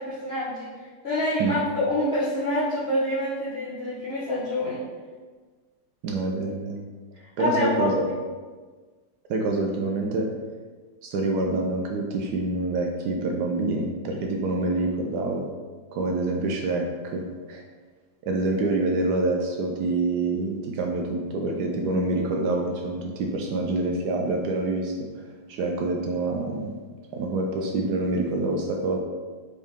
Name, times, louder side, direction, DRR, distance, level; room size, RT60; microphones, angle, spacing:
voice 1, 0.0-4.8 6.0-6.2 7.4-8.1, left 1 dB, 45° left, -11 dB, 0.9 m, -27 dB
voice 2, 6.0-6.8 7.4-8.0 9.3-10.3 11.0-15.5 15.9-17.6 18.2-24.9 25.5-26.7 27.1-29.0, right 2 dB, 75° right, 1 dB, 1.0 m, -26 dB
4.1 x 3.5 x 3.5 m, 1.4 s
omnidirectional pair, 2.0 m